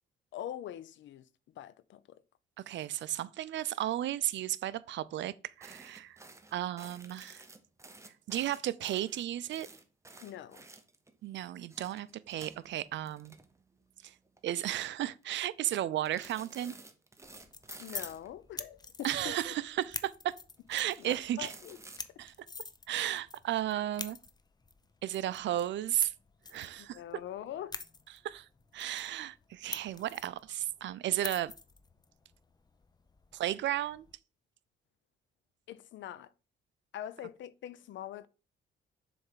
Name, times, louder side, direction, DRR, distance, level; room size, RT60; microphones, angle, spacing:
voice 1, 0.3-1.2 1.6-2.0 10.2-10.7 17.8-19.4 21.0-21.8 26.8-27.8 35.7-36.3 36.9-38.3, left 11 dB, 70° left, 0.6 m, -43 dB
voice 2, 2.7-6.2 6.5-7.4 8.3-9.7 11.2-13.4 14.0-14.1 14.4-16.8 19.0-20.3 20.7-21.5 22.2-22.3 22.9-24.2 25.0-26.1 26.5-27.0 28.2-28.5 28.7-31.5 33.3-34.1, right 12 dB, 65° right, 0.5 m, -34 dB
sound 1, 5.6-11.1 11.6-13.9 14.2-14.4 14.8-15.2 16.0-18.3 19.0-19.8 20.6-22.1, right 2 dB, 15° right, 1.0 m, -52 dB
sound 2, 17.2-34.1, left 4 dB, 20° left, 0.6 m, -47 dB
7.0 x 3.4 x 5.7 m
cardioid pair, 90°, 20 cm